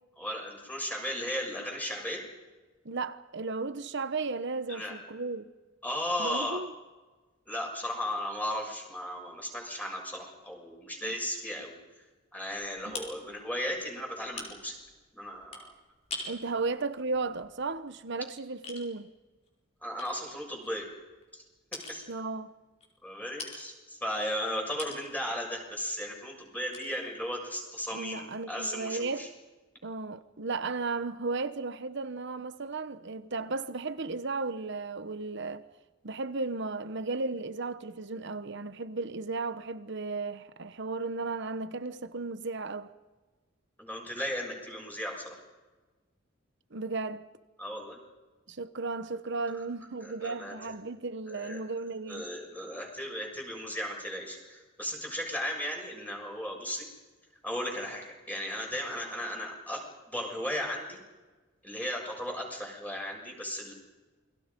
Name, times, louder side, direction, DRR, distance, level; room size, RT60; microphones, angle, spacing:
voice 1, 0.2-2.2 4.7-4.9 5.8-6.6 7.5-11.7 12.3-14.7 15.1-15.7 19.8-20.9 21.3-21.4 21.9-22.1 23.0-29.3 43.8-45.3 47.6-48.0 49.5-49.6 50.0-50.6 51.3-51.6 52.1-56.9 57.4-59.8 60.1-61.0 61.6-63.7, equal, 10° left, 7.0 m, -36 dB
voice 2, 2.8-5.5 6.2-6.7 11.0-11.1 12.8-13.0 16.3-19.1 22.1-22.5 27.9-29.3 29.8-35.6 36.0-42.9 46.7-47.2 48.5-52.2, right 3 dB, 65° right, 1.1 m, -35 dB
sound 1, 12.5-18.3 18.6-18.8 19.4-19.5 20.0-21.4 21.7-22.1 22.8-22.9 23.4-23.7 24.1-25.2 25.6-25.8 26.1-26.2 26.7-26.9, left 3 dB, 35° left, 4.9 m, -44 dB
29.0 x 23.0 x 5.4 m
head